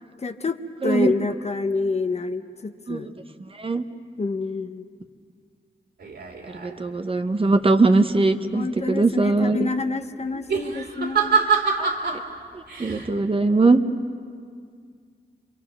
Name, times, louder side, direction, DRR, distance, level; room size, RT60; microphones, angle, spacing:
voice 1, 0.2-0.6 0.8-3.1 4.2-4.9 8.5-11.4, left 3 dB, 40° left, 8 dB, 0.8 m, -27 dB
sound 1, 6.0-6.8 10.3-12.2 12.7-13.1, right 5 dB, 75° right, 2.4 m, -25 dB
voice 2, 6.5-9.7 11.7-12.2 12.5-13.8, right 3 dB, 30° right, 8 dB, 0.8 m, -21 dB
28.5 x 24.5 x 6.0 m, 2.1 s
wide cardioid pair, 160°, 18 cm